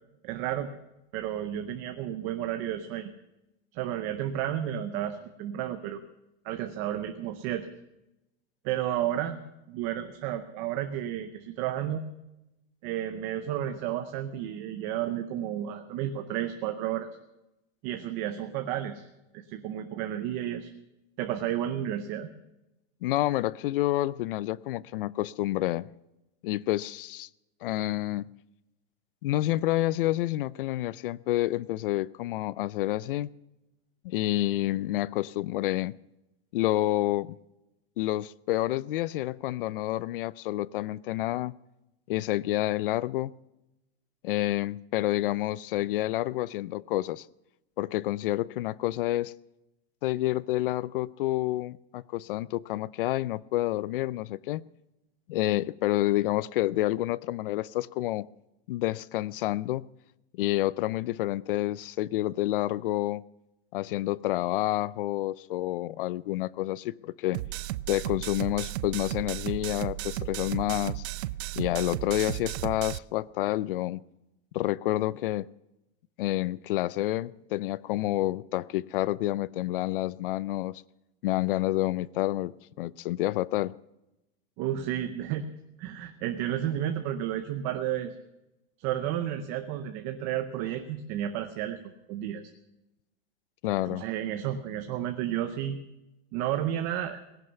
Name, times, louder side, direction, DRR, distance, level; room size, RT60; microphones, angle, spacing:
voice 1, 0.2-0.7 1.1-3.1 3.7-6.0 6.4-7.7 8.6-9.4 9.7-12.0 12.8-17.1 17.8-19.0 19.3-20.7 21.2-22.3 84.6-85.5 85.8-88.1 88.8-91.8 92.1-92.4 93.8-95.8 96.3-97.2, right 11 dB, 25° right, 8 dB, 0.6 m, -32 dB
voice 2, 23.0-25.9 26.4-27.3 27.6-28.3 29.2-33.3 34.0-36.0 36.5-37.4 38.0-41.5 42.1-43.3 44.2-47.3 47.8-49.3 50.0-54.6 55.3-58.3 58.7-59.9 60.3-63.2 63.7-67.4 67.9-71.0 71.6-74.0 74.5-75.5 76.2-80.8 81.2-83.7 93.6-94.0, left 16 dB, 55° left, 22 dB, 0.5 m, -29 dB
sound 1, 67.3-73.0, right 16 dB, 85° right, 0.5 m, -34 dB
18.5 x 11.0 x 6.9 m, 0.94 s
supercardioid pair, 180°, 32 cm